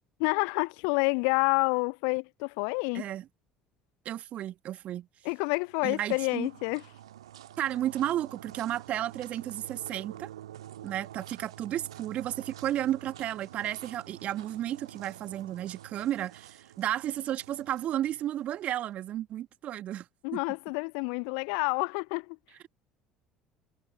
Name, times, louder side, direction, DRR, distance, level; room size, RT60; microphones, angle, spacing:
voice 1, 0.2-3.0 5.2-6.8 20.2-22.4, left 40 dB or more, 60° left, 0.4 m, -28 dB
voice 2, 2.9-3.2 4.1-5.1 5.8-6.5 7.6-10.3 10.8-20.1 20.3-20.4, right 12 dB, 45° right, 1.7 m, -33 dB
sound 1, 5.4-18.7, right 12 dB, 70° right, 1.6 m, -48 dB
figure-of-eight pair, 60°, 3 cm